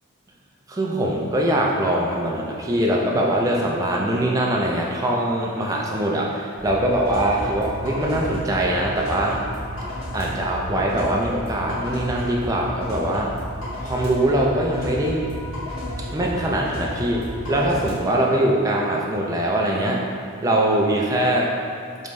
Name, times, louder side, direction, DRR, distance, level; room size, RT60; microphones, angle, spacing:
voice 1, 0.7-9.4 10.1-13.3 13.8-15.3 16.1-20.0 20.4-21.5, right 1 dB, 15° right, -2 dB, 0.4 m, -22 dB
sound 1, 6.5-17.9, equal, 70° left, 1.3 m, -32 dB
5.1 x 3.1 x 2.6 m, 2.4 s
head